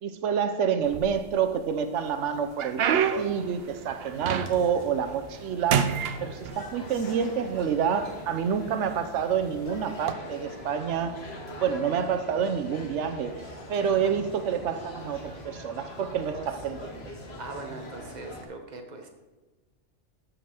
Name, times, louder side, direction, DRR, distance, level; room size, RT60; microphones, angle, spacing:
voice 1, 0.0-5.9 6.2-11.2 11.6-17.1, right 7 dB, 90° right, 9 dB, 1.0 m, -28 dB
sound 1, 0.8-1.6 2.1-4.8 5.2-5.4 5.7-6.9 7.7-7.8 8.5-8.8 9.9-10.1, right 8 dB, 65° right, 0.8 m, -28 dB
sound 2, 1.9-18.4, left 1 dB, 60° left, 1.5 m, -43 dB
voice 2, 17.4-19.1, right 3 dB, 40° right, 4 dB, 1.2 m, -40 dB
13.5 x 5.3 x 4.4 m, 1.2 s
omnidirectional pair, 1.2 m